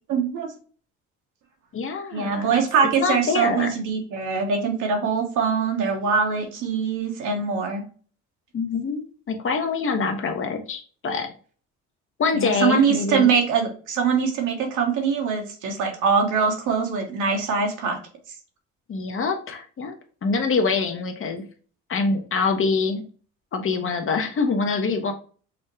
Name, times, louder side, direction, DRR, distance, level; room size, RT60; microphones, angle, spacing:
voice 1, 0.1-0.5 2.1-7.8 12.3-18.0, right 5 dB, 75° right, 2 dB, 1.2 m, -23 dB
voice 2, 1.7-2.6 3.0-3.7 8.5-11.3 12.2-13.3 18.9-20.0 20.2-21.4 21.9-23.0 23.5-25.1, left 4 dB, 45° left, 6 dB, 1.0 m, -25 dB
5.4 x 2.2 x 3.1 m, 0.42 s
supercardioid pair, 70°, 31 cm